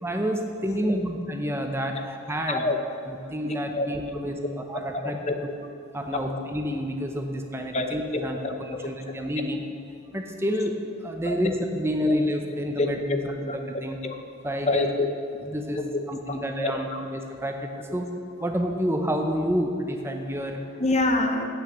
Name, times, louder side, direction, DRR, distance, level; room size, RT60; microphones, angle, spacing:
voice 1, 0.0-2.7 3.1-5.2 5.9-8.4 8.7-9.6 10.1-13.0 13.8-14.0 14.4-14.9 15.4-15.8 16.1-18.1 18.4-20.6, equal, 10° right, 4 dB, 0.7 m, -29 dB
voice 2, 2.5-2.8 3.7-3.9 4.9-5.4 6.1-6.4 7.7-8.5 11.2-11.4 12.8-13.2 13.5-14.1 14.7-15.1 15.8-16.0 16.3-16.4 16.6-17.0 20.8-21.5, left 2 dB, 30° left, 5 dB, 0.7 m, -27 dB
8.1 x 5.9 x 7.7 m, 2.5 s
head